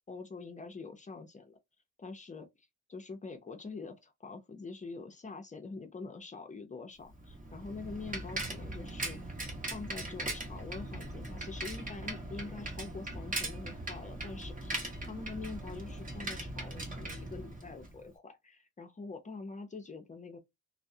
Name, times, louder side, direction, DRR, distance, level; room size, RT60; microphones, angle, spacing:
voice 1, 0.0-1.6 2.0-2.5 2.9-9.2 9.7-20.4, left 4 dB, 25° left, 0.5 m, -45 dB
Bicycle, 7.1-18.0, right 1 dB, 25° right, 1.0 m, -40 dB
2.2 x 2.1 x 2.6 m
cardioid pair, 90°, 30 cm